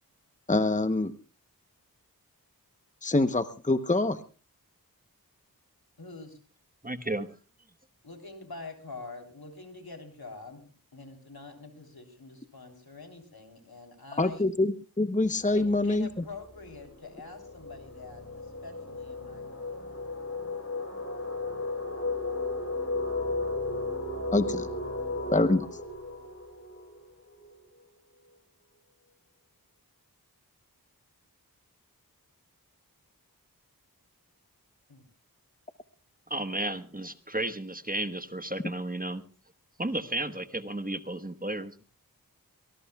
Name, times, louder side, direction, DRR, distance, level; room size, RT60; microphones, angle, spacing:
voice 1, 0.5-1.1 3.0-4.2 14.2-16.1 24.3-24.7 25.3-25.7, left 2 dB, 20° left, 11 dB, 0.9 m, -25 dB
voice 2, 6.0-6.4 8.0-10.7 10.9-14.5 15.5-19.7 34.9-35.1, left 3 dB, 80° left, 4 dB, 3.5 m, -46 dB
voice 3, 6.8-7.3 36.3-39.2 39.8-41.9, right 1 dB, 25° right, 10 dB, 1.2 m, -33 dB
sound 1, 15.5-15.7 16.0-27.6, left 2 dB, 40° left, 4.5 m, -35 dB
23.5 x 20.0 x 2.3 m, 0.36 s
wide cardioid pair, 40°, 37 cm